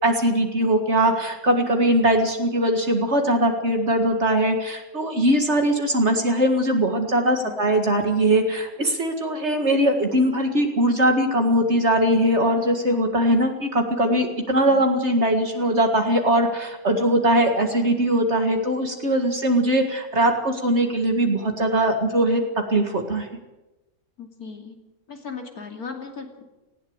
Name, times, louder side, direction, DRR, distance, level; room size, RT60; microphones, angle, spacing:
voice 1, 0.0-23.3, right 1 dB, 50° right, 4 dB, 2.2 m, -21 dB
voice 2, 24.2-24.8 25.1-26.4, left 5 dB, 85° left, 4 dB, 3.2 m, -37 dB
19.0 x 16.5 x 8.8 m, 1.1 s
omnidirectional pair, 1.5 m